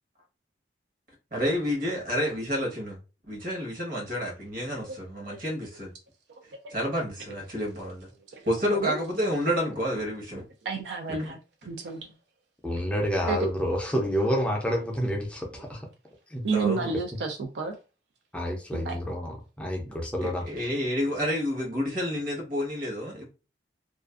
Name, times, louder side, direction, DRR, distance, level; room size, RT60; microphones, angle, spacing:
voice 1, 1.3-3.0 3.3-5.9 6.7-8.1 8.5-10.4 11.2-11.3 16.5-16.9 20.2-23.2, equal, 50° right, 1.1 m, -29 dB
voice 2, 6.3-6.7 8.3-8.4 8.7-9.0 10.6-11.4 11.7-12.0 13.3-13.4 16.4-17.7 18.7-19.0, right 4 dB, 70° right, 0.4 m, -31 dB
voice 3, 12.6-15.9 16.3-16.4 18.3-19.3 19.6-20.4, equal, 5° left, 0.4 m, -28 dB
2.5 x 2.4 x 2.3 m
head